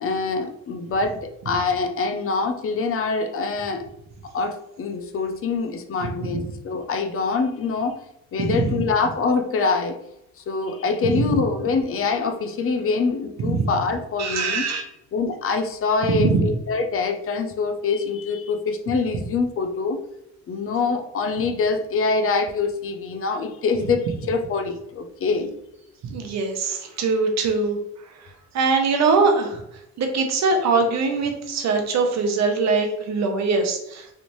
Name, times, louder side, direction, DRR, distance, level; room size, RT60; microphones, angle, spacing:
voice 1, 0.0-3.9 4.3-8.0 8.3-10.0 10.5-14.7 15.1-20.0 20.5-25.5, left 4 dB, 45° left, 7 dB, 0.5 m, -24 dB
voice 2, 8.4-8.7 11.1-11.3 13.4-13.6 14.2-14.8 16.1-16.3 26.0-27.8 28.5-29.6 30.0-34.1, right 4 dB, 60° right, 4 dB, 0.8 m, -22 dB
3.3 x 2.6 x 3.0 m, 0.82 s
cardioid pair, 90°, 30 cm